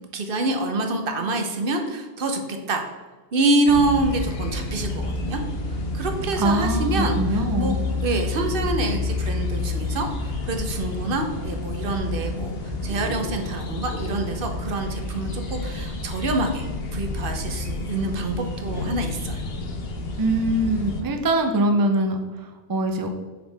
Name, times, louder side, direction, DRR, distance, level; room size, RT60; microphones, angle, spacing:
voice 1, 0.1-2.9 3.3-5.4 5.9-7.7 8.0-19.4, right 2 dB, 60° right, 4 dB, 0.9 m, -26 dB
sound 1, 3.7-21.0, left 3 dB, 70° left, 1.0 m, -29 dB
voice 2, 6.4-7.8 20.2-23.1, right 1 dB, 35° right, 5 dB, 0.3 m, -23 dB
6.6 x 4.5 x 3.4 m, 1.3 s
omnidirectional pair, 1.1 m